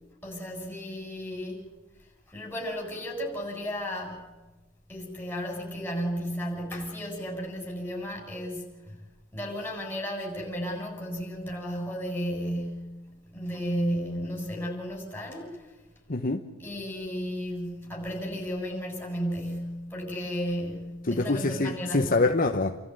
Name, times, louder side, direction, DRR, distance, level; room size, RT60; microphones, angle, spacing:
voice 1, 0.2-1.6 2.3-4.3 4.9-9.0 9.3-13.0 13.3-15.7 16.6-22.1, equal, 10° left, 7.4 m, -33 dB
voice 2, 16.1-16.4 21.0-22.8, left 3 dB, 40° left, 1.1 m, -25 dB
29.5 x 14.0 x 9.7 m
head